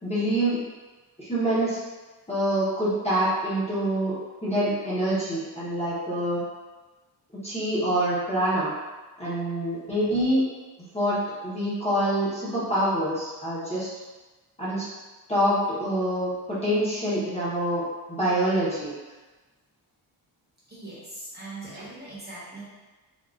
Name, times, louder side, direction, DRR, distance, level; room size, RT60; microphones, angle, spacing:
voice 1, 0.0-0.6 1.2-1.8 2.3-6.4 7.3-8.7 9.2-10.4 10.9-13.9 14.6-14.9 15.3-17.8 18.1-18.9, right 1 dB, 15° left, -11 dB, 0.8 m, -26 dB
voice 2, 20.7-22.6, right 2 dB, 25° right, -9 dB, 0.8 m, -40 dB
3.7 x 2.4 x 2.4 m, 1.2 s
wide cardioid pair, 155°, 43 cm